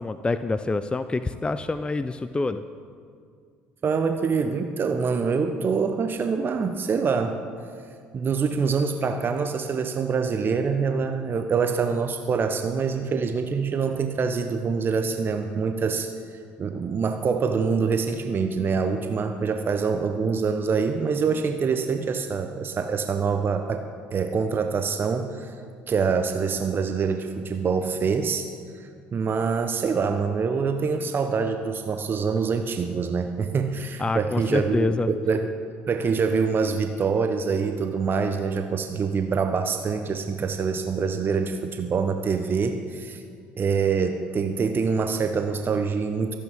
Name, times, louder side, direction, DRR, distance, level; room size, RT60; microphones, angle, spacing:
voice 1, 0.0-2.6 34.0-35.1, left 3 dB, 15° left, 12 dB, 0.5 m, -26 dB
voice 2, 3.8-7.4 8.1-16.1 16.6-23.8 24.1-25.6 25.9-28.5 28.8-35.5 35.9-43.2 43.6-46.4, right 5 dB, 35° right, 7 dB, 0.8 m, -25 dB
25.0 x 8.6 x 3.6 m, 2.2 s
figure-of-eight pair, 60°, 6 cm